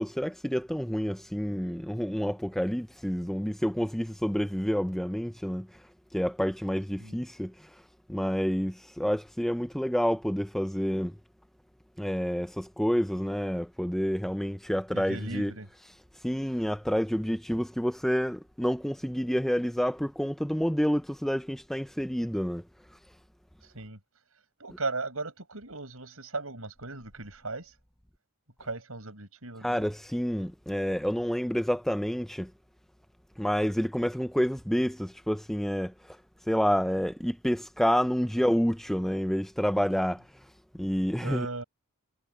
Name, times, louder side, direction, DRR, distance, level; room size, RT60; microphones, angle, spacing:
voice 1, 0.0-5.7 6.1-7.7 8.1-11.1 12.0-15.5 16.2-22.6 29.6-32.5 33.4-36.2 36.5-40.2 40.7-41.5, equal, ahead, 0.6 m, -28 dB
voice 2, 14.9-15.7 23.7-24.0 24.6-27.7 28.6-29.8 41.2-41.6, right 3 dB, 70° right, 6.7 m, -37 dB
head